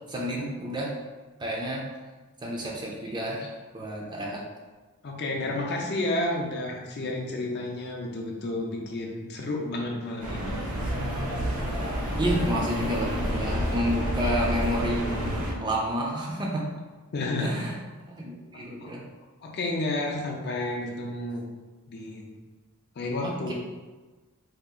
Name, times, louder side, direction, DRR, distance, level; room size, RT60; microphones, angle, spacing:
voice 1, 0.1-0.9 1.4-1.8 2.4-3.5 3.7-4.4 5.4-5.5 12.2-15.1 15.4-16.7 17.4-17.8 18.1-19.0 23.2-23.5, right 1 dB, 20° right, -2 dB, 0.4 m, -30 dB
voice 2, 5.0-10.5 17.1-17.5 18.8-18.9 19.4-21.4 21.9-22.3 23.0-23.5, left 2 dB, 45° left, 0 dB, 0.5 m, -31 dB
sound 1, 10.2-15.5, equal, 85° right, 0.9 m, -29 dB
2.8 x 2.4 x 3.7 m, 1.3 s
head